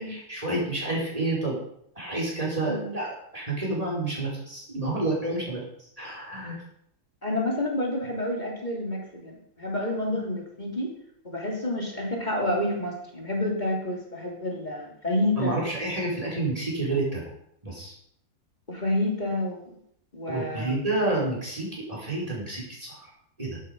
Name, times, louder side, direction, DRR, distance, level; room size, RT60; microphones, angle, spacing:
voice 1, 0.0-1.6 2.0-5.6 6.0-6.6 15.4-17.2 17.6-17.9 20.3-23.0 23.4-23.6, right 2 dB, 20° right, -4 dB, 5.1 m, -29 dB
voice 2, 2.6-2.9 7.2-10.9 11.2-15.6 18.7-19.7 20.1-20.8, left 1 dB, 25° left, -1 dB, 3.2 m, -29 dB
12.0 x 11.0 x 5.3 m, 0.73 s
omnidirectional pair, 1.7 m